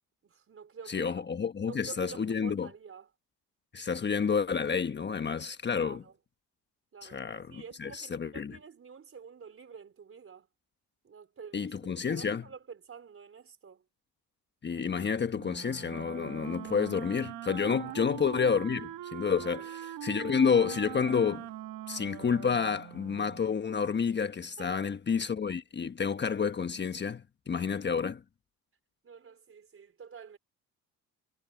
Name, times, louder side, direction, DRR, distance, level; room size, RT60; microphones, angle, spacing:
voice 1, 0.2-1.2 1.7-3.1 5.8-6.2 6.9-10.5 11.0-13.8 17.8-18.1 19.4-19.7 24.6-24.9 29.0-30.4, right 6 dB, 35° right, 4.1 m, -49 dB
voice 2, 0.9-2.7 3.7-6.0 7.0-8.6 11.5-12.4 14.6-21.5 21.9-28.2, left 6 dB, 30° left, 1.2 m, -30 dB
Wind instrument woodwind instrument, 15.3-23.5, right 13 dB, 65° right, 1.4 m, -42 dB
cardioid pair, 100°, 36 cm